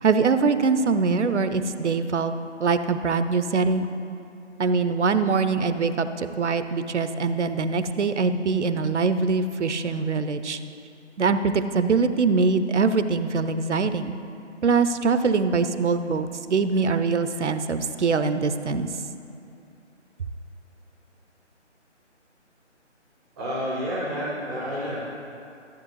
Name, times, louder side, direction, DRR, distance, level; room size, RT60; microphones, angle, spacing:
voice 1, 0.0-2.3 2.6-3.9 4.6-10.6 11.2-14.1 14.6-18.9, right 4 dB, 70° right, 11 dB, 0.7 m, -23 dB
voice 2, 23.4-25.0, equal, ahead, -10 dB, 0.6 m, -29 dB
14.5 x 8.5 x 3.2 m, 2.6 s
figure-of-eight pair, 150°, 36 cm